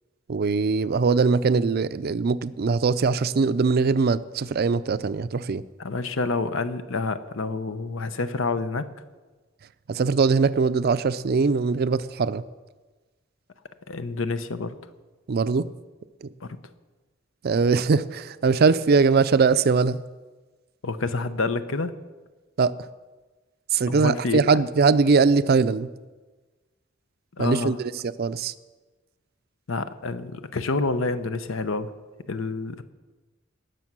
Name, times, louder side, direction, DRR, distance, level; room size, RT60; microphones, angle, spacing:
voice 1, 0.3-5.6 9.9-12.4 15.3-15.7 16.2-16.3 17.4-20.0 22.6-22.8 23.7-25.9 27.4-28.5, right 4 dB, 55° right, 15 dB, 0.4 m, -21 dB
voice 2, 5.8-8.8 13.9-14.7 16.4-16.6 20.8-21.9 23.9-24.6 27.4-27.8 29.7-31.9 32.3-32.8, left 3 dB, 85° left, 11 dB, 0.8 m, -28 dB
18.5 x 6.9 x 6.1 m, 1.3 s
head